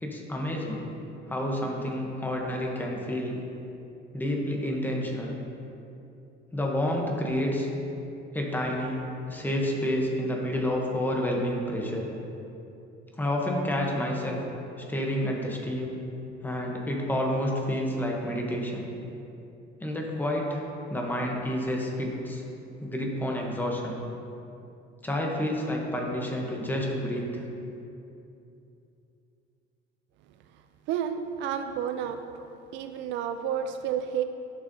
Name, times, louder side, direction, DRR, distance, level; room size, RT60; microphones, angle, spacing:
voice 1, 0.0-0.8 1.3-3.3 4.1-5.3 6.5-7.7 8.3-9.0 9.3-12.1 13.2-14.4 14.9-15.9 16.4-18.9 19.8-20.6 20.9-22.4 22.8-24.0 25.0-27.4, left 1 dB, 10° left, -1 dB, 0.8 m, -29 dB
voice 2, 30.9-32.2 32.7-34.2, right 9 dB, 65° right, 8 dB, 0.4 m, -30 dB
11.0 x 6.3 x 2.7 m, 2.8 s
cardioid pair, 160°, 21 cm